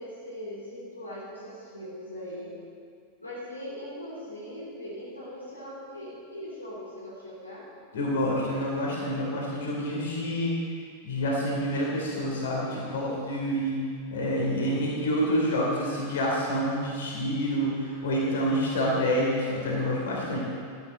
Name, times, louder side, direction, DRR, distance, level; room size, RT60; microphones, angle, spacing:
voice 1, 0.0-2.5 3.2-7.7, equal, 85° left, -8 dB, 2.8 m, -40 dB
voice 2, 7.9-10.5 11.0-13.8 14.1-20.4, equal, 60° left, -4 dB, 3.3 m, -27 dB
12.5 x 11.5 x 3.9 m, 2.2 s
figure-of-eight pair, 90°, 0 cm